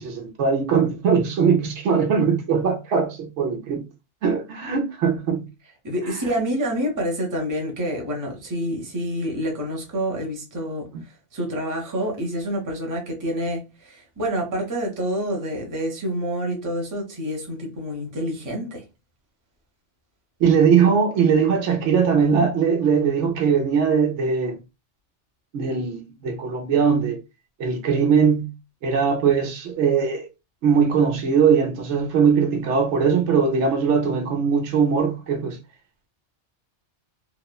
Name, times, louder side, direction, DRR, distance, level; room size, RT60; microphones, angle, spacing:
voice 1, 0.0-3.8 4.2-5.4 6.0-6.3 10.9-11.0 20.4-24.6 25.5-27.2 27.6-28.5 28.8-30.3 30.6-35.6, right 6 dB, 75° right, 0.9 m, -20 dB
voice 2, 5.8-10.9 11.3-18.8, equal, 20° right, 0.6 m, -27 dB
3.0 x 2.0 x 2.2 m
omnidirectional pair, 1.2 m